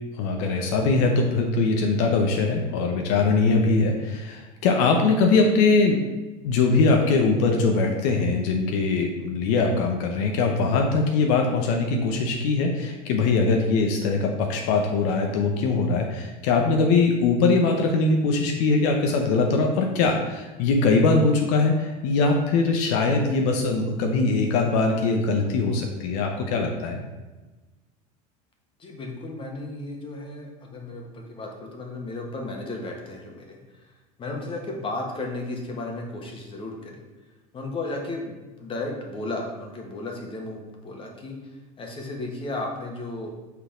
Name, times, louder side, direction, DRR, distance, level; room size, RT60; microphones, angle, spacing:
voice 1, 0.2-6.0 6.4-27.0, left 3 dB, 70° left, 2 dB, 0.9 m, -22 dB
voice 2, 28.8-33.6 34.2-37.0 37.5-38.3 38.6-41.4 41.8-43.3, left 2 dB, 30° left, 1 dB, 1.4 m, -34 dB
5.7 x 4.0 x 5.0 m, 1.2 s
supercardioid pair, 120°, 18 cm